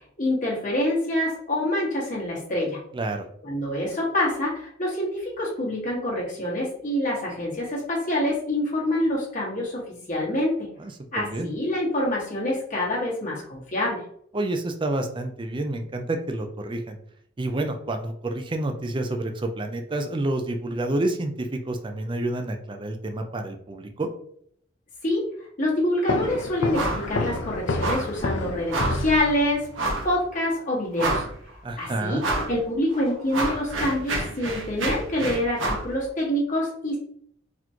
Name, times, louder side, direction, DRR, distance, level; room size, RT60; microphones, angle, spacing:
voice 1, 0.2-2.8 3.4-10.7 11.1-14.0 25.0-25.2 25.6-29.7 30.0-31.2 31.8-32.2 32.5-37.0, left 1 dB, 40° left, -4 dB, 1.6 m, -26 dB
voice 2, 2.9-3.3 10.8-11.5 14.3-17.0 17.4-24.1 31.6-32.2, right 2 dB, 25° right, 5 dB, 0.4 m, -29 dB
sound 1, 26.1-29.8, left 2 dB, 65° left, 0.5 m, -29 dB
sound 2, 26.7-27.1 27.3-27.5 27.8-28.2 28.7-29.1 29.7-30.1 30.6-30.7 31.0-31.5 32.2-32.5 32.9-35.9, right 2 dB, 80° right, 1.0 m, -28 dB
4.1 x 3.0 x 2.8 m, 0.65 s
head